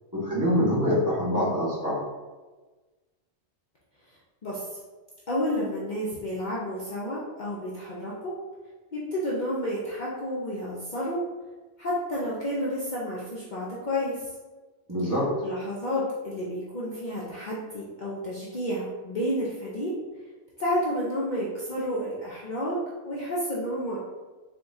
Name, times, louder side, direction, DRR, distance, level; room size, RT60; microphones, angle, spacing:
voice 1, 0.1-2.0 14.9-15.3, equal, 15° right, -9 dB, 1.4 m, -25 dB
voice 2, 4.4-4.8 5.3-8.3 8.9-11.2 11.8-14.3 15.4-19.9 20.6-24.0, equal, 45° left, -6 dB, 0.8 m, -30 dB
4.4 x 3.6 x 2.6 m, 1.3 s
omnidirectional pair, 1.2 m